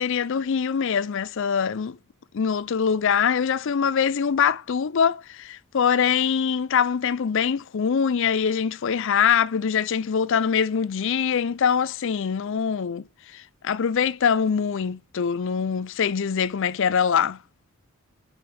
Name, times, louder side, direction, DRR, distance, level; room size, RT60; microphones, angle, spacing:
voice 1, 0.0-2.0 2.3-13.1 13.3-17.4, left 7 dB, 60° left, 0.4 m, -23 dB
7.0 x 5.3 x 4.2 m
head